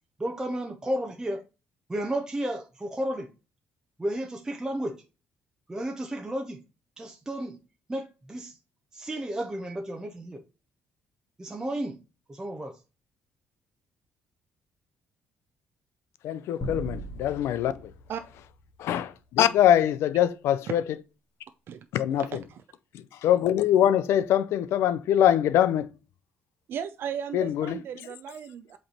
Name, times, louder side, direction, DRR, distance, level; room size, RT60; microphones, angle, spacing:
voice 1, 0.2-1.4 1.9-3.3 4.0-4.9 5.7-6.6 7.0-7.6 7.9-8.6 8.9-10.4 11.4-12.0 12.3-12.8, right 1 dB, 15° right, 0.8 m, -32 dB
voice 2, 16.2-17.7 18.8-21.0 21.9-22.4 23.2-25.9 27.3-27.8, left 11 dB, 75° left, 0.6 m, -23 dB
sound 1, 16.6-19.2, equal, 35° left, 1.8 m, -39 dB
voice 3, 22.2-22.6 26.7-28.8, right 8 dB, 55° right, 0.5 m, -36 dB
7.8 x 3.3 x 4.3 m
cardioid pair, 115°, 5 cm